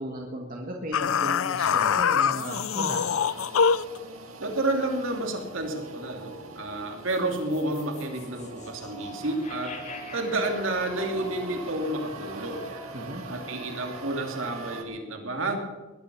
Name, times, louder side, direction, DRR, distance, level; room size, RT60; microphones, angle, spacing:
voice 1, 0.0-3.1 12.9-13.2, equal, 40° right, -1 dB, 1.9 m, -36 dB
sound 1, 0.9-4.0, left 7 dB, 80° left, 0.5 m, -24 dB
sound 2, 1.3-14.8, right 3 dB, 90° right, 2.3 m, -43 dB
voice 2, 4.4-9.7 10.1-12.7 13.3-15.6, right 2 dB, 70° right, 3 dB, 2.6 m, -30 dB
sound 3, 7.1-13.4, left 1 dB, 35° left, 1.8 m, -44 dB
21.0 x 9.8 x 6.1 m, 1.2 s
head